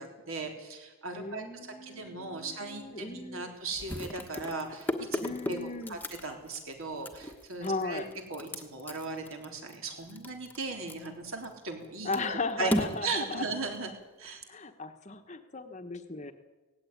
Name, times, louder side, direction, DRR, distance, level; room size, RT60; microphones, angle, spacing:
voice 1, 0.0-8.0 8.3-13.9 14.2-14.4, right 3 dB, 65° right, 2 dB, 3.7 m, -38 dB
voice 2, 1.2-3.5 5.2-6.0 7.6-8.1 12.0-13.4 14.5-16.3, left 3 dB, 30° left, 8 dB, 1.2 m, -36 dB
sound 1, 2.3-2.4 2.8-2.9 3.7-11.9 12.1-14.3, equal, 10° left, 1.3 m, -36 dB
18.0 x 15.5 x 9.4 m, 1.2 s
head